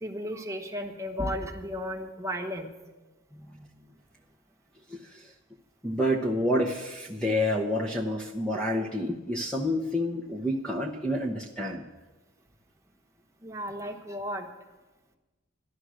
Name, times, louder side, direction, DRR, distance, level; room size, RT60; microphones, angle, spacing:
voice 1, 0.0-2.7 13.4-14.5, equal, 15° right, 3 dB, 1.2 m, -34 dB
voice 2, 3.3-3.7 4.9-5.3 5.8-11.8, left 1 dB, 5° left, 0 dB, 0.8 m, -29 dB
13.0 x 11.5 x 6.3 m, 1.2 s
head